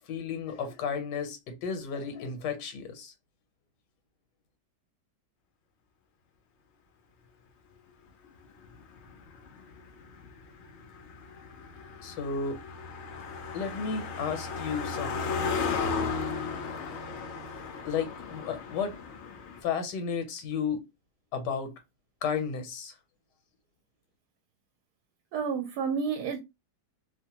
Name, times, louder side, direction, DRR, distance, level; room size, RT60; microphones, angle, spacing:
voice 1, 0.0-3.1 12.0-12.6 13.5-15.5 17.8-18.9 19.6-20.8 21.3-21.7 22.2-23.0, left 6 dB, 85° left, 1.3 m, -33 dB
Car passing by, 8.4-19.6, left 5 dB, 70° left, 0.6 m, -35 dB
voice 2, 25.3-26.4, right 6 dB, 75° right, 1.1 m, -30 dB
2.9 x 2.1 x 2.8 m
omnidirectional pair, 1.8 m